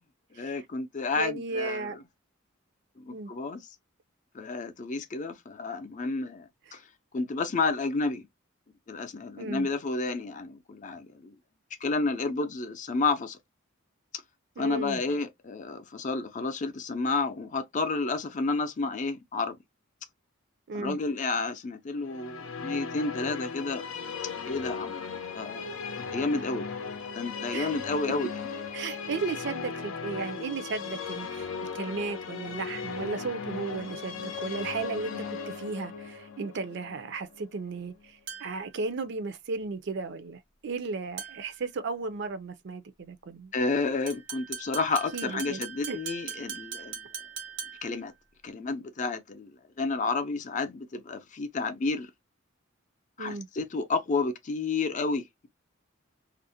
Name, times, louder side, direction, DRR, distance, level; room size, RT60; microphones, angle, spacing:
voice 1, 0.4-2.0 3.0-3.6 4.3-6.8 7.1-8.2 8.9-11.3 11.8-13.4 14.6-19.6 20.7-23.9 24.4-25.1 25.3-26.7 27.1-28.3 43.5-46.9 47.8-48.1 48.4-49.5 49.8-52.1 53.2-55.5, left 3 dB, 40° left, 0.4 m, -31 dB
voice 2, 1.2-2.0 3.1-3.3 6.7-6.8 9.4-9.7 14.6-15.0 20.7-21.0 27.5-27.7 28.7-43.5 45.1-45.6 45.9-46.0 53.2-53.5, right 4 dB, 60° right, 0.4 m, -35 dB
sound 1, 22.0-38.1, left 5 dB, 85° left, 0.6 m, -37 dB
sound 2, 38.3-38.7 41.2-41.6 44.1-48.0, right 7 dB, 85° right, 0.9 m, -40 dB
2.5 x 2.1 x 2.6 m
head